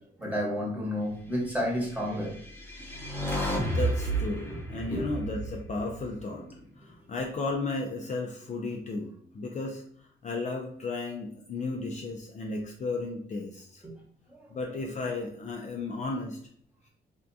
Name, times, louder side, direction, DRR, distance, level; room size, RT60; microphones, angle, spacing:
voice 1, 0.2-2.3 4.5-5.1 6.8-6.9 13.8-13.9 14.3-14.5, equal, 10° right, -3 dB, 1.1 m, -31 dB
sound 1, 2.2-6.5, right 1 dB, 10° left, 0.7 m, -32 dB
voice 2, 3.6-6.5 6.8-9.8 10.2-13.8 14.5-16.4, left 3 dB, 40° left, 0 dB, 0.4 m, -34 dB
3.4 x 2.3 x 2.6 m, 0.62 s
cardioid pair, 115°, 20 cm